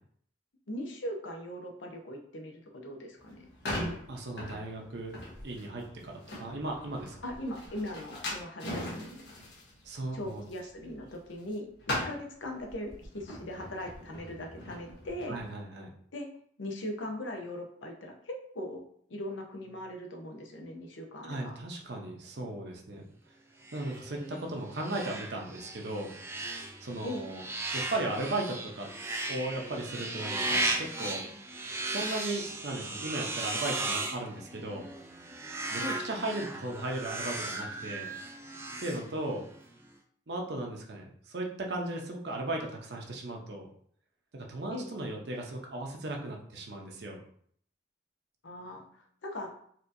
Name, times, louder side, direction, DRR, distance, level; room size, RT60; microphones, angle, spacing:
voice 1, 0.7-3.5 7.2-9.3 10.1-11.7 12.1-15.4 16.1-16.3 16.6-18.8 19.1-21.6 27.0-27.3 35.8-36.0 44.7-44.9 48.4-49.5, left 1 dB, 85° left, 2 dB, 0.8 m, -40 dB
sound 1, 3.2-11.5 11.8-15.5, left 1 dB, 70° left, 1.2 m, -40 dB
voice 2, 4.1-5.1 5.4-7.2 9.8-10.5 15.3-15.9 21.2-23.1 23.7-26.1 26.8-27.4 27.7-28.9 29.3-31.2 31.8-34.8 35.7-38.1 38.8-39.4 40.3-43.7 44.3-47.2, right 2 dB, 60° right, 0 dB, 0.7 m, -36 dB
sound 2, 23.6-39.6, right 2 dB, 15° right, 0.3 m, -36 dB
4.3 x 2.7 x 2.6 m, 0.62 s
head